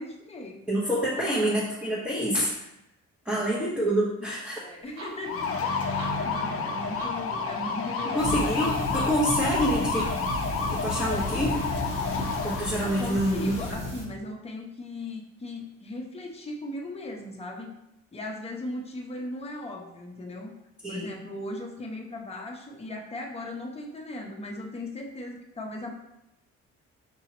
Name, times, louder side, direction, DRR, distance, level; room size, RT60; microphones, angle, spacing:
voice 1, 0.0-0.6 1.2-1.5 3.3-3.5 4.6-8.8 12.8-17.7 18.1-20.5 20.9-25.9, left 1 dB, 20° left, 0 dB, 0.8 m, -38 dB
voice 2, 0.7-2.5 3.2-4.6 6.6-6.7 8.1-10.0 10.6-11.6 12.4-13.9 20.8-21.1, equal, 5° right, -7 dB, 1.1 m, -27 dB
sound 1, 4.8-10.4, right 1 dB, 80° right, 1.3 m, -47 dB
sound 2, 5.2-13.7, left 4 dB, 50° left, 0.6 m, -30 dB
sound 3, 8.2-14.0, left 1 dB, 40° right, 1.6 m, -33 dB
6.1 x 2.7 x 2.9 m, 0.87 s
cardioid pair, 90°, 30 cm